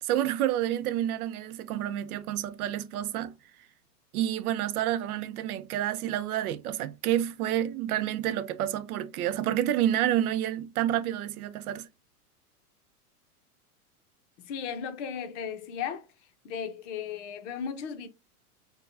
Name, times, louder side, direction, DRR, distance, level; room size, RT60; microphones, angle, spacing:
voice 1, 0.0-3.3 4.1-11.9, right 12 dB, 70° right, 0.6 m, -29 dB
voice 2, 14.4-16.1 16.4-18.1, left 7 dB, 50° left, 0.8 m, -35 dB
4.6 x 2.3 x 2.5 m
supercardioid pair, 145°, 46 cm